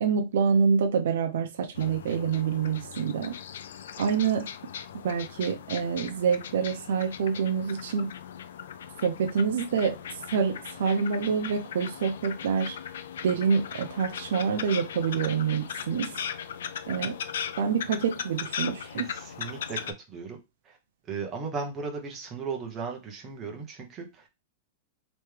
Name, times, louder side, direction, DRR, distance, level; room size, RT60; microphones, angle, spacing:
voice 1, 0.0-3.4 4.0-4.5 5.0-8.1 9.0-10.0 10.3-12.8 13.2-16.1 16.9-17.2 17.6-19.1, right 6 dB, 70° right, 0.6 m, -26 dB
sound 1, 1.8-19.9, left 8 dB, 80° left, 0.4 m, -38 dB
voice 2, 18.8-20.4 20.6-20.8 21.1-24.3, right 5 dB, 15° right, 0.8 m, -36 dB
3.4 x 3.1 x 3.2 m
supercardioid pair, 170°, 0 cm